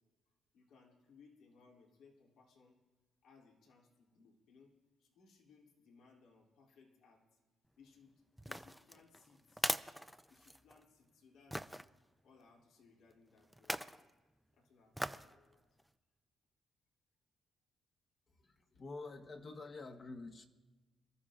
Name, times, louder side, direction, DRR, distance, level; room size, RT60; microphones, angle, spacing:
voice 1, 0.5-2.8 3.2-4.7 5.0-7.4 7.8-9.7 10.3-11.8 12.2-13.8 14.5-15.7, left 5 dB, 85° left, -3 dB, 2.9 m, -65 dB
sound 1, 8.4-10.8 11.5-11.8 13.5-14.0 14.9-15.3 15.8-15.9, equal, ahead, 0.5 m, -40 dB
voice 2, 18.3-20.4, left 3 dB, 45° left, 3 dB, 1.2 m, -48 dB
27.5 x 13.5 x 2.5 m, 1.2 s
cardioid pair, 90°, 0 cm